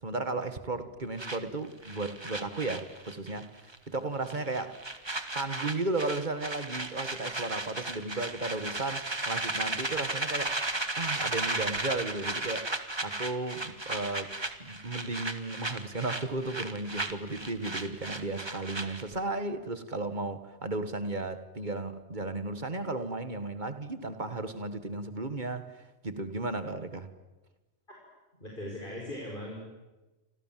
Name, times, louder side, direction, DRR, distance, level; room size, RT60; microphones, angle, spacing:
voice 1, 0.0-4.8 5.3-10.6 10.9-14.3 14.6-27.1, right 2 dB, 40° right, 1.9 m, -34 dB
sound 1, 1.2-3.4 3.7-4.0 4.3-19.2, right 2 dB, 20° right, 1.7 m, -35 dB
voice 2, 28.4-29.6, left 1 dB, 45° left, 5.7 m, -39 dB
29.0 x 25.5 x 7.6 m
omnidirectional pair, 1.2 m